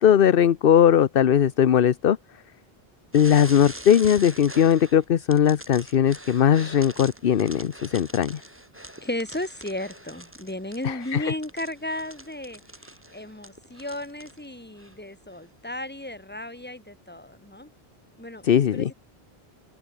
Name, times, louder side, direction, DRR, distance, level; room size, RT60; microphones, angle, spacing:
voice 1, 0.0-2.2 3.1-8.4 10.8-11.3 18.4-18.9, left 9 dB, 65° left, 0.9 m, -19 dB
sound 1, 3.1-5.0 5.3-14.4 14.8-15.0 15.7-15.8, right 1 dB, 10° right, 3.2 m, -43 dB
voice 2, 9.0-12.6 13.1-17.7 18.2-18.4 18.7-18.9, left 1 dB, 10° left, 2.2 m, -34 dB
open air
omnidirectional pair, 1.0 m